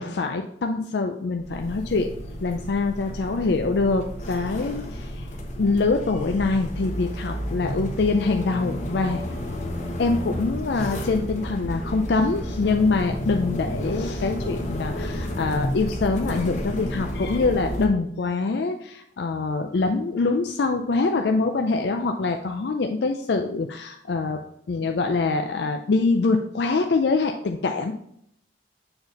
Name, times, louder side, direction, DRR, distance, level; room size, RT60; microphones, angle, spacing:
voice 1, 0.0-2.1 2.4-5.3 5.6-9.2 10.0-27.9, left 3 dB, 70° left, 5 dB, 0.4 m, -24 dB
sound 1, 1.4-17.9, equal, 40° left, 1.1 m, -31 dB
6.9 x 4.0 x 4.0 m, 0.71 s
head